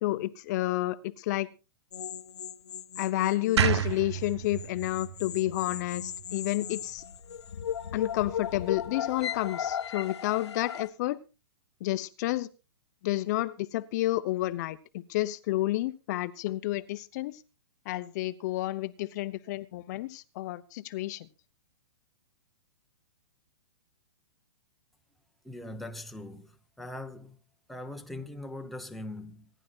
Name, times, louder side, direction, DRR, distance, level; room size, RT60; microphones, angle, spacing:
voice 1, 0.0-1.5 3.0-7.0 7.9-11.2 11.8-12.5 13.0-17.4 17.9-21.3, left 16 dB, 40° left, 0.8 m, -30 dB
sound 1, 1.9-3.9 4.2-10.9, left 9 dB, 85° left, 1.1 m, -37 dB
sound 2, 3.6-6.7, right 9 dB, 80° right, 0.8 m, -30 dB
voice 2, 25.4-27.4 27.7-29.5, left 1 dB, ahead, 0.9 m, -41 dB
26.0 x 11.0 x 2.4 m
hypercardioid pair, 150°, 14 cm